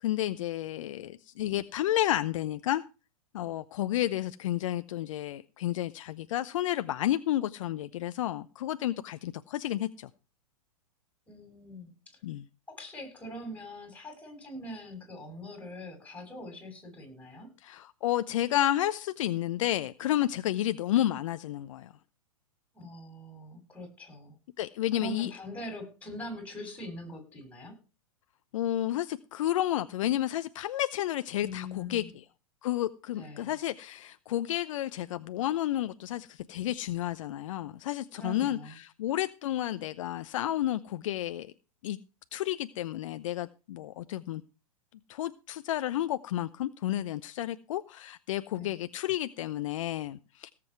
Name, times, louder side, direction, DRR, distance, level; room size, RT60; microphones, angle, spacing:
voice 1, 0.0-2.8 3.3-10.1 12.2-12.4 17.6-21.9 24.6-25.3 28.5-32.0 32.6-41.5 41.8-42.0 42.3-44.4 45.1-50.5, left 13 dB, 60° left, 0.8 m, -31 dB
voice 2, 11.3-12.2 12.7-17.5 22.7-24.4 24.9-27.8 31.4-32.1 33.1-33.6 38.1-38.8 48.6-48.7, left 1 dB, 10° left, 7.6 m, -43 dB
18.0 x 7.8 x 4.6 m
hypercardioid pair, 115°, 18 cm